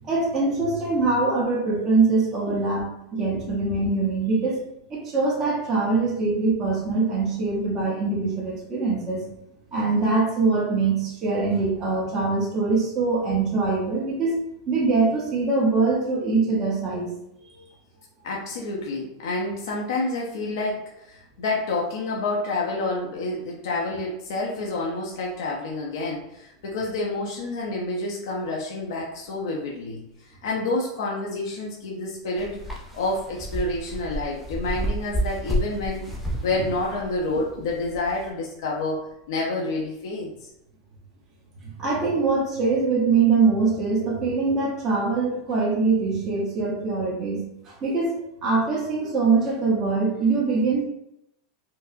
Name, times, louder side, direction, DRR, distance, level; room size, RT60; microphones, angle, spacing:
voice 1, 0.0-4.6 4.9-9.2 9.7-17.1 17.6-17.7 41.6-50.8, right 4 dB, 20° right, -5 dB, 0.9 m, -23 dB
voice 2, 18.2-30.0 30.4-32.6 32.9-36.1 36.4-40.3, left 2 dB, 70° left, -3 dB, 0.6 m, -28 dB
sound 1, 32.4-38.3, equal, 5° right, 0.4 m, -30 dB
4.5 x 2.0 x 2.6 m, 0.81 s
supercardioid pair, 170°, 2 cm